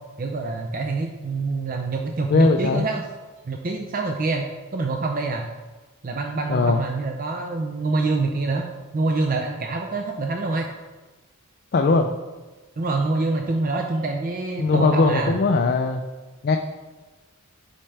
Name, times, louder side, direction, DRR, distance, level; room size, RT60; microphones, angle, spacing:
voice 1, 0.2-3.1 3.4-5.5 6.0-8.7 8.9-10.7 12.8-15.3, right 3 dB, 40° right, 2 dB, 0.5 m, -26 dB
voice 2, 2.3-2.9 6.5-6.8 11.7-12.1 14.6-16.0 16.4-16.6, left 3 dB, 45° left, 4 dB, 0.4 m, -19 dB
8.8 x 5.4 x 3.3 m, 1.2 s
head